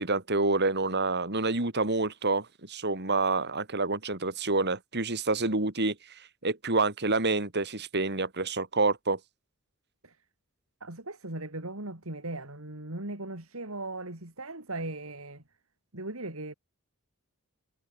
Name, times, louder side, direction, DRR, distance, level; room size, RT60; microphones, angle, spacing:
voice 1, 0.0-9.2, right 3 dB, 50° right, 3.5 m, -28 dB
voice 2, 10.8-15.4 15.9-16.5, right 2 dB, 70° right, 3.6 m, -38 dB
head